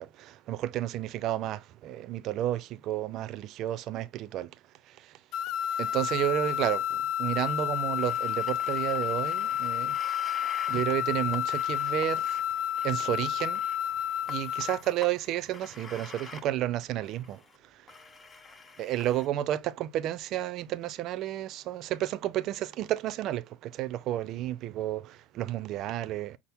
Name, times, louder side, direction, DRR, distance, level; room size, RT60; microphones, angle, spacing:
voice 1, 0.0-5.2 5.8-10.0 10.7-12.4 12.8-13.6 14.3-17.9 18.8-26.4, right 13 dB, 50° right, 0.5 m, -32 dB
sound 1, 5.3-14.9, left 11 dB, 55° left, 0.5 m, -30 dB
sound 2, 7.9-16.5 17.0-17.6 17.9-19.3, left 3 dB, 20° left, 0.7 m, -48 dB
6.0 x 2.0 x 3.5 m
supercardioid pair, 110°, 0 cm